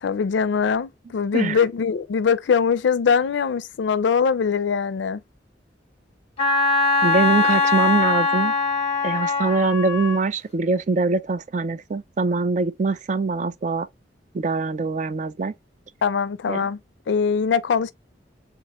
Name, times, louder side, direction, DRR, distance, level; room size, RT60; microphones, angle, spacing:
voice 1, 0.0-5.2 16.0-16.8 17.1-17.9, left 6 dB, 75° left, 0.4 m, -22 dB
Wind instrument woodwind instrument, 6.4-10.2, left 3 dB, 35° left, 1.0 m, -21 dB
voice 2, 7.0-8.5 9.0-13.9 14.3-15.5 16.5-16.6, right 3 dB, 40° right, 0.4 m, -23 dB
3.5 x 2.9 x 2.9 m
head